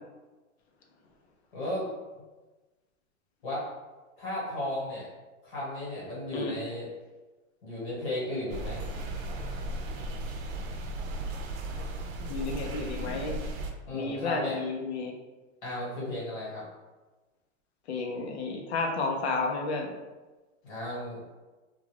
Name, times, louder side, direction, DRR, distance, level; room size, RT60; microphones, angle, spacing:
voice 1, 1.5-1.9 3.4-3.6 4.2-5.1 5.4-6.9 7.6-8.8 13.9-14.6 15.6-16.6 20.6-21.3, left 1 dB, 40° left, -7 dB, 1.2 m, -34 dB
sound 1, 8.5-13.7, right 1 dB, 90° right, 0.6 m, -35 dB
voice 2, 12.2-13.4 13.9-15.1 17.9-19.9, left 3 dB, 55° left, 2 dB, 0.5 m, -32 dB
2.4 x 2.2 x 3.1 m, 1.2 s
supercardioid pair, 175°, 40 cm